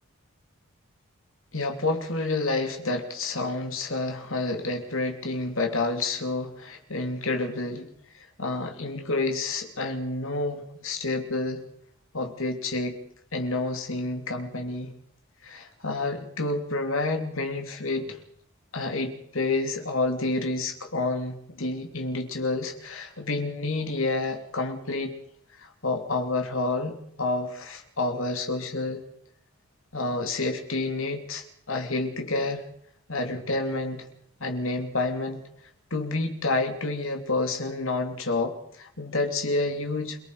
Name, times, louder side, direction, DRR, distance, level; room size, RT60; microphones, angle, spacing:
voice 1, 1.5-7.9 8.1-11.6 12.1-13.0 13.3-14.9 15.4-18.2 18.7-25.1 25.6-29.0 29.9-32.6 33.1-34.1 34.4-35.4 35.9-40.2, left 2 dB, 65° left, 5 dB, 3.0 m, -29 dB
28.0 x 19.0 x 4.8 m, 0.66 s
head